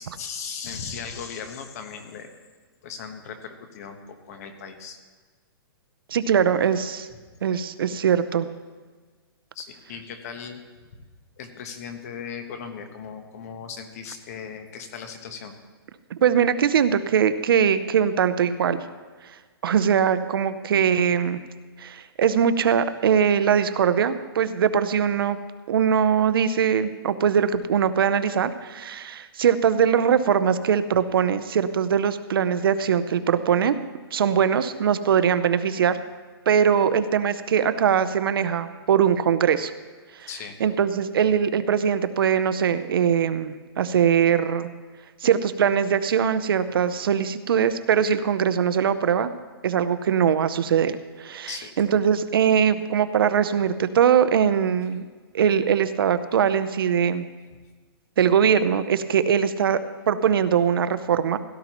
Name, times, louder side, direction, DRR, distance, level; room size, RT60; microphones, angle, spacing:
voice 1, 0.0-2.3 2.8-5.0 9.5-10.6 11.4-15.6 40.3-40.6 51.5-51.7, left 6 dB, 40° left, 7 dB, 1.2 m, -37 dB
voice 2, 6.1-7.1 7.4-8.5 16.2-18.8 19.6-21.4 21.8-25.4 25.7-33.7 34.1-36.0 36.5-39.7 40.2-40.3 40.6-44.7 45.2-49.3 49.6-55.0 55.3-57.3 58.2-61.4, right 8 dB, 65° right, 12 dB, 0.7 m, -21 dB
17.0 x 12.0 x 3.0 m, 1.4 s
hypercardioid pair, 170°, 13 cm